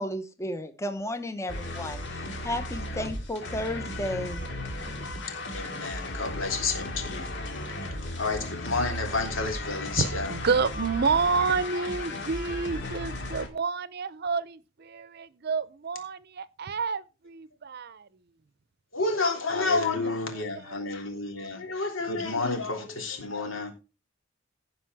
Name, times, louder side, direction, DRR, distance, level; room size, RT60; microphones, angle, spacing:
voice 1, 0.0-2.0 2.4-4.4, left 1 dB, 15° left, 0.8 m, -33 dB
sound 1, 1.5-13.5, left 1 dB, 65° left, 2.3 m, -35 dB
voice 2, 5.5-7.4 8.2-10.4 18.9-23.7, left 3 dB, 85° left, 3.3 m, -30 dB
voice 3, 10.0-18.1 19.6-19.8 20.5-21.5, right 5 dB, 55° right, 0.6 m, -29 dB
16.0 x 5.4 x 4.6 m
head